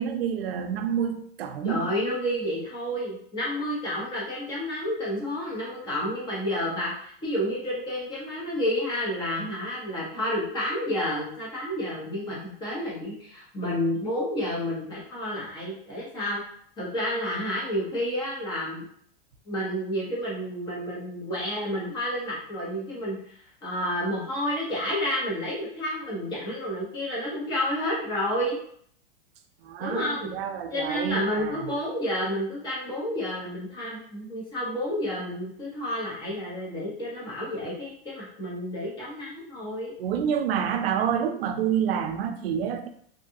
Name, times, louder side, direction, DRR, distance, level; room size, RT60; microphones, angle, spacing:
voice 1, 0.0-1.9 29.6-31.7 40.0-42.9, right 8 dB, 85° right, 7 dB, 0.5 m, -28 dB
voice 2, 1.6-16.4 16.8-18.9 19.5-23.3 23.6-28.6 29.8-30.4 30.7-39.9, equal, 15° left, -6 dB, 0.7 m, -30 dB
2.7 x 2.3 x 2.6 m, 0.62 s
supercardioid pair, 165°, 30 cm